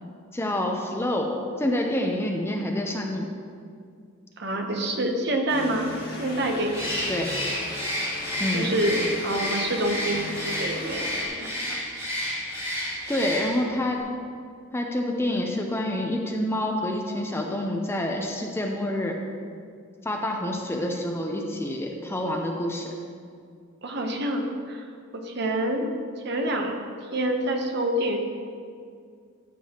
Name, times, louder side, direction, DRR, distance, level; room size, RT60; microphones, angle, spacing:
voice 1, 0.3-3.3 7.1-7.3 8.4-8.8 13.1-14.0 14.7-19.2 20.0-22.9, left 1 dB, 10° left, 1 dB, 0.6 m, -27 dB
voice 2, 4.4-5.9 6.2-7.0 8.5-11.6 23.8-24.8 25.1-25.9 26.2-28.2, right 1 dB, 50° right, 3 dB, 0.9 m, -27 dB
sound 1, 5.5-11.3, left 1 dB, 45° left, 1.9 m, -38 dB
Bird, 6.7-13.8, left 1 dB, 15° right, 2.4 m, -31 dB
13.5 x 7.6 x 3.0 m, 2.2 s
head